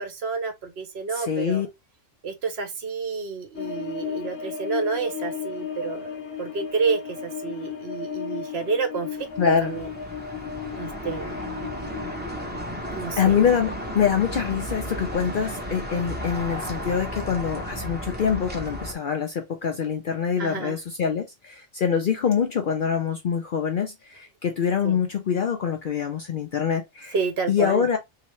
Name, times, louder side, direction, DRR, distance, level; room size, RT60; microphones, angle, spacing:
voice 1, 0.0-1.7 2.2-6.1 6.4-9.3 9.6-9.9 10.7-11.4 12.9-13.4 20.4-20.8 24.8-25.1 27.1-27.9, right 5 dB, 60° right, 0.9 m, -29 dB
voice 2, 1.1-1.7 9.4-9.7 13.2-27.1 27.5-28.0, left 7 dB, 60° left, 0.6 m, -25 dB
sound 1, 3.5-12.2, left 7 dB, 85° left, 1.2 m, -34 dB
sound 2, 9.1-18.9, equal, 10° right, 0.6 m, -34 dB
3.2 x 2.8 x 3.0 m
omnidirectional pair, 1.3 m